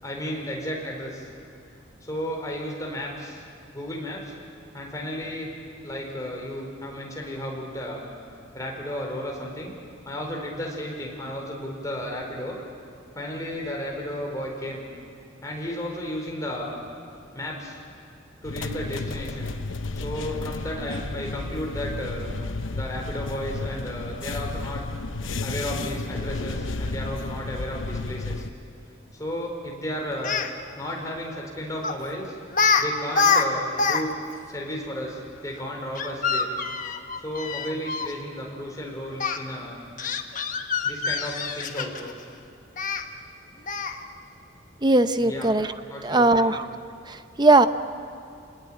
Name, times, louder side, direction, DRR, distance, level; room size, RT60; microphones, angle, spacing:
voice 1, 0.0-1.3 2.0-3.4 3.7-4.3 4.7-5.5 5.8-8.1 8.5-9.8 10.1-12.6 13.1-14.8 15.4-16.8 17.3-17.8 18.4-19.5 19.9-22.3 22.7-24.8 25.4-28.4 29.1-30.4 30.8-32.4 32.8-34.1 34.5-36.5 37.2-39.8 40.8-42.1 45.2-45.5 45.9-46.6, equal, 15° left, -1 dB, 4.6 m, -33 dB
sound 1, 18.4-28.5, left 3 dB, 80° left, 0.9 m, -32 dB
Speech, 30.2-30.5 31.8-32.0 32.5-32.8 33.1-34.0 34.3-34.4 36.0-38.1 39.2-39.4 40.0-42.1 42.8-43.0 43.7-44.0, left 5 dB, 40° left, 1.3 m, -25 dB
voice 2, 44.8-45.7 46.0-46.7 47.1-47.7, right 2 dB, 20° right, 11 dB, 0.7 m, -19 dB
27.5 x 20.0 x 8.8 m, 2.4 s
head